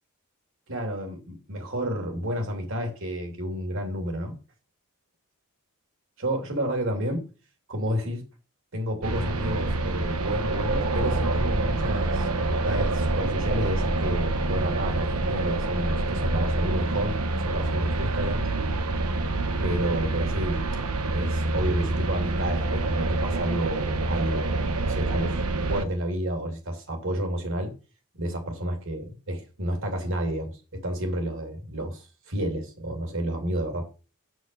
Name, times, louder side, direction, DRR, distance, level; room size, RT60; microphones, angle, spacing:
voice 1, 0.7-4.3 6.2-7.2 7.7-8.2 8.7-18.4 19.6-20.6 21.1-25.4 25.7-27.7 28.1-33.9, right 1 dB, 60° right, 2.8 m, -30 dB
sound 1, 9.0-25.8, right 2 dB, 85° right, 1.0 m, -26 dB
6.9 x 6.3 x 6.7 m
head